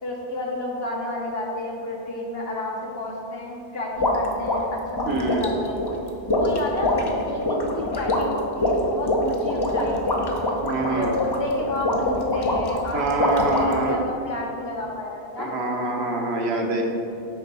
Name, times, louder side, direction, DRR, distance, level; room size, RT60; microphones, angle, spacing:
voice 1, 0.0-5.8 6.3-10.2 10.7-15.7, left 2 dB, 60° left, -1 dB, 1.1 m, -30 dB
sound 1, 4.0-13.9, left 1 dB, 30° left, 0.4 m, -24 dB
voice 2, 5.1-5.5 10.6-11.1 12.9-14.0 15.4-16.8, right 2 dB, 65° right, 1 dB, 1.0 m, -25 dB
6.8 x 3.4 x 5.4 m, 2.5 s
omnidirectional pair, 1.2 m